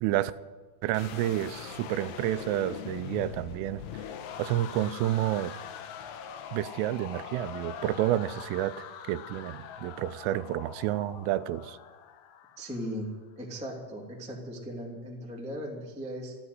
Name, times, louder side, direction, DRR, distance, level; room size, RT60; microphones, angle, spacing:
voice 1, 0.0-0.3 0.8-4.0 4.4-5.5 6.5-11.8, right 13 dB, 90° right, 14 dB, 3.2 m, -30 dB
sound 1, 0.9-13.0, left 8 dB, 80° left, 3.3 m, -43 dB
voice 2, 12.6-13.1 13.3-16.3, equal, 5° right, -2 dB, 0.5 m, -38 dB
14.0 x 9.6 x 9.4 m, 1.3 s
omnidirectional pair, 5.6 m